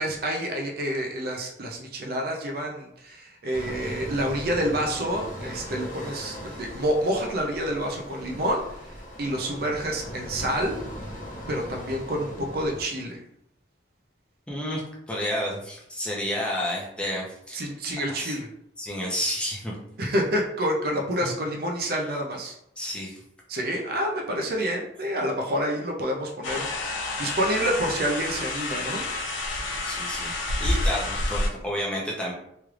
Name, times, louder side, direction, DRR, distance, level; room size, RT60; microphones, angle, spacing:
voice 1, 0.0-8.6 9.2-10.8 11.5-13.2 17.5-18.5 20.0-22.6 23.5-29.0, equal, 50° right, 0 dB, 0.5 m, -28 dB
sound 1, 3.5-12.8, equal, 40° left, 0.9 m, -39 dB
voice 2, 14.5-14.8 15.1-17.6 18.1-18.3 18.8-19.7 21.2-21.3 22.8-23.2 29.9-32.3, equal, 5° left, -5 dB, 0.6 m, -30 dB
sound 2, 26.4-31.5, left 2 dB, 75° left, 0.5 m, -29 dB
3.2 x 3.1 x 2.4 m, 0.76 s
head